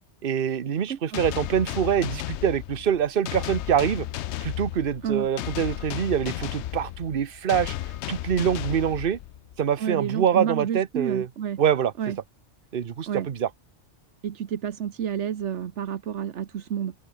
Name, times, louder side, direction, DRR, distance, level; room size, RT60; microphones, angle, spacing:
voice 1, 0.2-4.1 4.4-7.7 8.1-9.2 9.6-11.3 11.6-11.9 12.7-13.5, right 8 dB, 55° right, 1.1 m, -25 dB
voice 2, 0.9-1.2 5.0-5.3 9.8-11.6 12.0-12.2 13.1-13.3 14.2-16.9, right 9 dB, 85° right, 1.3 m, -30 dB
sound 1, 1.1-9.6, left 13 dB, 75° left, 0.8 m, -34 dB
open air
omnidirectional pair, 1.2 m